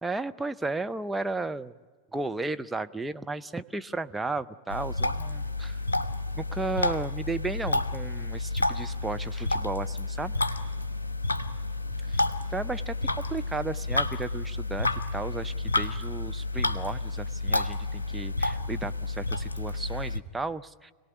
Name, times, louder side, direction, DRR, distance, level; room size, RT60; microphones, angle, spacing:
voice 1, 0.0-1.7 2.1-5.8 6.3-10.6 12.1-12.2 12.5-13.0 13.3-20.9, right 3 dB, 10° right, 9 dB, 0.6 m, -34 dB
sound 1, 4.7-20.2, left 2 dB, 75° left, 1.0 m, -30 dB
26.5 x 18.5 x 9.4 m, 1.5 s
figure-of-eight pair, 90°, 0 cm